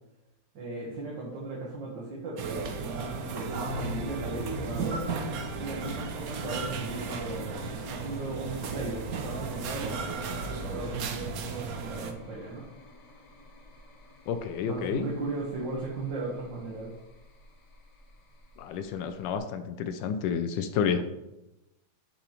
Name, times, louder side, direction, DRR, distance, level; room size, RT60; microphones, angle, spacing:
voice 1, 0.5-5.0 5.6-12.7 14.6-16.9, right 3 dB, 60° right, -4 dB, 1.8 m, -37 dB
sound 1, 2.4-12.1, right 5 dB, 85° right, 0.7 m, -35 dB
sound 2, 3.6-19.4, left 2 dB, 60° left, 1.5 m, -44 dB
voice 2, 14.3-15.1 18.6-21.0, left 7 dB, 75° left, 8 dB, 1.1 m, -30 dB
8.6 x 5.4 x 3.0 m, 0.95 s
omnidirectional pair, 2.4 m